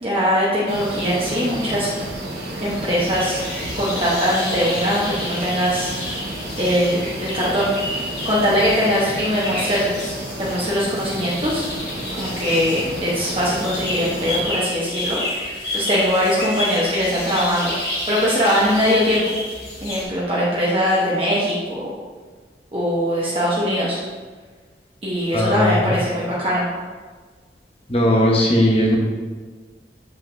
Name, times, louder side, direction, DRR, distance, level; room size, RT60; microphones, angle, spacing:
voice 1, 0.0-1.9 2.6-3.4 3.8-5.9 6.6-7.7 8.2-10.1 10.4-11.6 12.2-15.2 15.7-17.7 18.1-19.2 19.8-21.9 22.7-24.0 25.0-26.7, equal, 30° right, -7 dB, 0.9 m, -21 dB
sound 1, 0.7-14.4, right 1 dB, 65° right, 1.2 m, -32 dB
sound 2, 3.0-20.0, left 1 dB, 60° left, 1.8 m, -30 dB
voice 2, 25.3-25.7 27.9-29.0, equal, 35° left, -2 dB, 1.1 m, -17 dB
7.5 x 5.6 x 2.6 m, 1.4 s
head